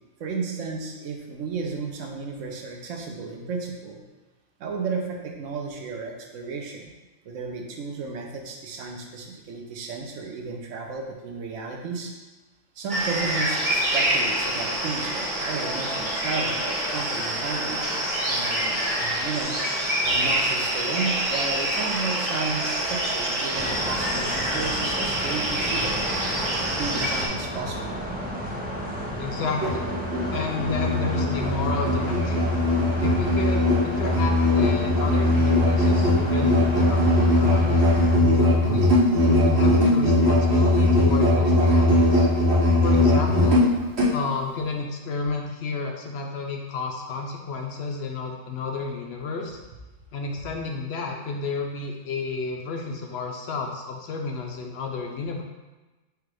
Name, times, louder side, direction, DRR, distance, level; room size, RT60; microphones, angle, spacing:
voice 1, 0.2-4.0 4.6-6.9 7.2-12.1 12.8-17.9 18.3-26.0 26.6-28.0 32.9-33.0, right 4 dB, 80° right, 2 dB, 1.0 m, -33 dB
sound 1, 12.9-27.3, right 1 dB, 40° right, 1.1 m, -26 dB
sound 2, 23.5-38.2, equal, 10° right, 0.4 m, -33 dB
voice 2, 29.2-29.9 30.3-32.4 33.0-37.8 38.2-38.9 39.3-42.3 42.8-43.6 44.1-49.6 50.1-55.4, left 4 dB, 65° left, 2 dB, 0.7 m, -31 dB
Musical instrument, 29.5-44.2, left 1 dB, 60° right, 1.1 m, -20 dB
4.7 x 2.4 x 4.7 m, 1.2 s
omnidirectional pair, 1.3 m